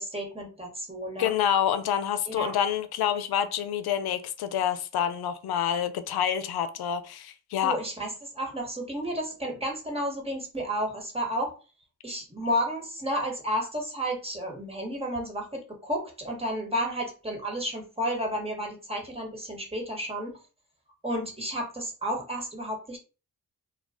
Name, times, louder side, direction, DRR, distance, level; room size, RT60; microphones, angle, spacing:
voice 1, 0.0-1.3 2.3-2.5 7.6-11.5 12.0-20.4 21.0-23.0, equal, 15° right, 1.4 m, -32 dB
voice 2, 1.2-7.8, left 9 dB, 80° left, 0.5 m, -27 dB
2.3 x 2.3 x 3.5 m
supercardioid pair, 40°, 38 cm